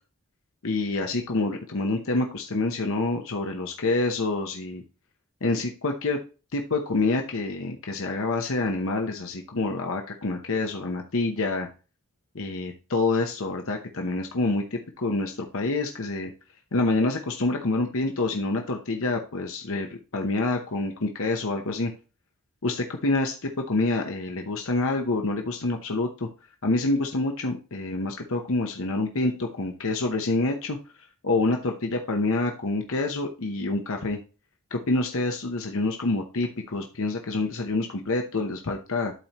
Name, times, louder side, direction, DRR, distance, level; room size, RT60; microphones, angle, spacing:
voice 1, 0.6-4.8 5.4-6.2 6.5-11.7 12.3-16.3 16.7-21.9 22.6-26.3 26.6-30.8 31.2-34.2 34.7-39.1, left 2 dB, 65° left, 3 dB, 0.9 m, -27 dB
12.0 x 4.3 x 3.0 m, 0.34 s
head